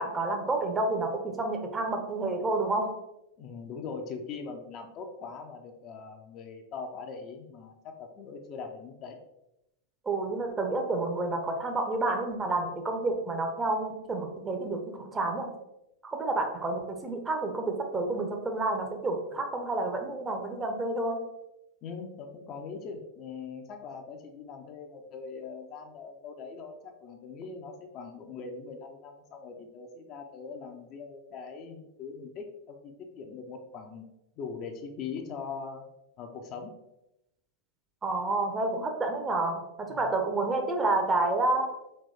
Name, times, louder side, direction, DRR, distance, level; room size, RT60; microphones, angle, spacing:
voice 1, 0.0-2.9 10.1-15.5 16.0-21.2 38.0-41.7, right 2 dB, 15° right, 3 dB, 0.7 m, -29 dB
voice 2, 3.4-9.2 21.8-34.1 34.4-35.8 36.2-36.7 39.9-40.2, left 5 dB, 35° left, 4 dB, 0.6 m, -41 dB
4.1 x 3.0 x 3.4 m, 0.87 s
figure-of-eight pair, 90°, 0 cm